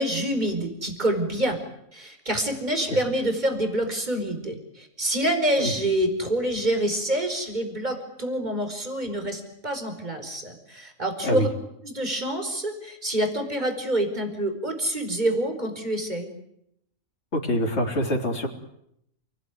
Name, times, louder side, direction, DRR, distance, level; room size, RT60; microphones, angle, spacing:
voice 1, 0.0-1.6 1.9-11.5 11.8-16.3, right 1 dB, 30° right, 6 dB, 5.1 m, -27 dB
voice 2, 17.3-18.5, left 1 dB, 55° left, 0 dB, 3.7 m, -25 dB
29.5 x 20.0 x 9.6 m, 0.76 s
omnidirectional pair, 1.4 m